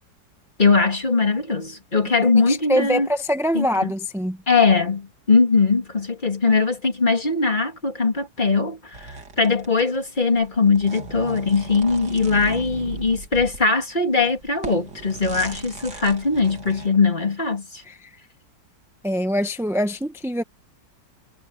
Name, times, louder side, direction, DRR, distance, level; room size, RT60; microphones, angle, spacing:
voice 1, 0.6-3.1 3.5-3.9 4.5-17.8, left 4 dB, 25° left, 2.6 m, -20 dB
voice 2, 2.5-4.4 17.8-18.1 19.0-20.4, equal, ahead, 0.7 m, -24 dB
sound 1, 8.9-10.0 10.2-13.7 14.1-16.9, right 4 dB, 60° right, 3.1 m, -37 dB
omnidirectional pair, 2.1 m